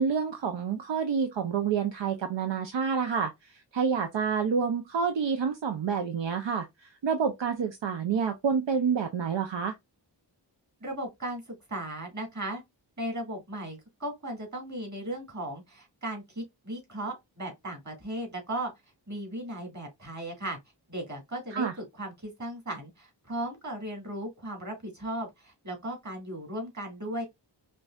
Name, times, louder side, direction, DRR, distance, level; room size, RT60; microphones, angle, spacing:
voice 1, 0.0-3.3 3.7-9.7 21.5-21.7, right 6 dB, 75° right, 0.6 m, -28 dB
voice 2, 10.8-12.6 13.0-18.7 19.1-20.6 20.9-27.2, right 1 dB, 40° right, 2.2 m, -36 dB
5.2 x 2.7 x 2.3 m
wide cardioid pair, 65°, 45 cm